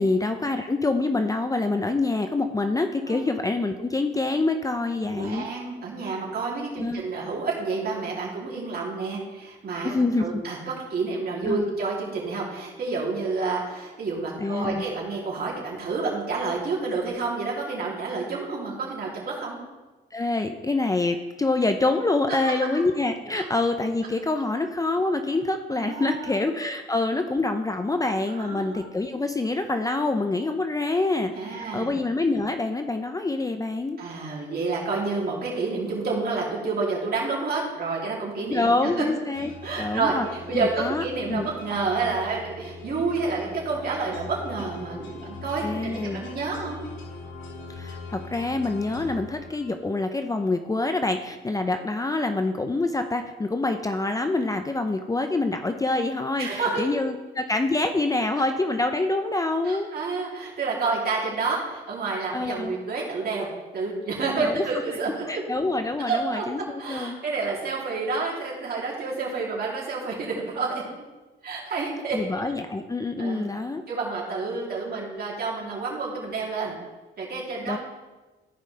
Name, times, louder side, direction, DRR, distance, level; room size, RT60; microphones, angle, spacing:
voice 1, 0.0-5.4 6.8-7.0 9.8-10.4 11.5-11.7 14.4-14.8 20.1-34.0 38.5-39.5 39.8-40.3 40.5-41.5 45.6-46.2 47.8-59.9 62.3-62.7 64.4-64.7 65.3-66.6 66.9-67.2 72.1-73.8 77.7-77.8, left 2 dB, 15° left, 6 dB, 0.6 m, -26 dB
voice 2, 5.1-19.6 23.3-23.4 25.7-26.3 28.4-28.8 31.3-31.9 34.0-39.0 39.6-46.9 56.4-56.8 59.6-63.5 63.7-65.4 66.1-66.5 66.8-70.8 71.4-72.2 73.2-73.5 73.9-76.8 77.2-77.8, right 4 dB, 50° right, -4 dB, 3.1 m, -29 dB
sound 1, 39.3-50.0, left 3 dB, 85° left, 2.0 m, -41 dB
15.0 x 5.2 x 3.3 m, 1.2 s
cardioid pair, 90°, 20 cm